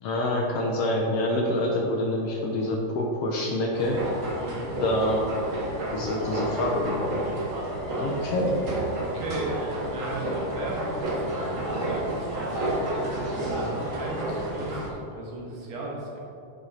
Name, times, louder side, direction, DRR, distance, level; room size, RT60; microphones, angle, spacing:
voice 1, 0.0-4.0 4.8-5.2 5.9-7.2 8.0-8.6, left 1 dB, 65° left, 0 dB, 1.7 m, -26 dB
sound 1, 3.7-14.9, right 1 dB, 40° right, 1.2 m, -31 dB
voice 2, 4.4-4.7 9.0-9.6 9.9-12.8 13.4-16.2, right 2 dB, 65° right, -4 dB, 2.5 m, -36 dB
10.5 x 5.5 x 4.2 m, 2.7 s
omnidirectional pair, 3.3 m